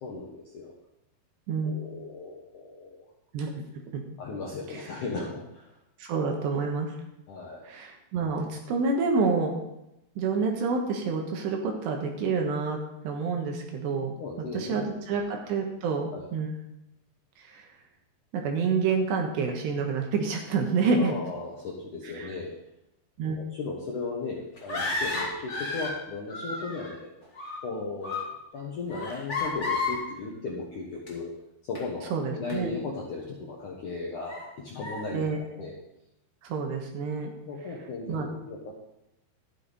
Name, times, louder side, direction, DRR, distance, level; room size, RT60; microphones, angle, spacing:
voice 1, 0.0-0.7 1.6-3.1 4.2-5.7 7.3-7.7 14.2-15.2 16.1-16.2 21.0-22.5 23.2-27.1 27.6-28.2 28.5-31.3 31.6-35.7 37.5-38.8, left 3 dB, 65° left, -3 dB, 2.0 m, -36 dB
voice 2, 6.0-6.9 7.7-9.6 10.2-14.2 14.5-16.5 17.4-17.7 18.3-21.1 22.1-22.3 23.2-23.4 32.1-32.7 35.1-35.4 36.4-37.3 38.1-38.3, right 4 dB, 70° right, 2 dB, 3.0 m, -28 dB
sound 1, 24.6-26.0 26.3-26.9 27.2-27.7 28.0-28.3 28.9-30.1 31.1-31.2 31.7-31.8 32.5-32.6 33.2-33.3 34.3-34.4 34.8-35.0, left 3 dB, 30° left, 1.4 m, -32 dB
13.0 x 9.9 x 4.1 m, 0.85 s
omnidirectional pair, 5.7 m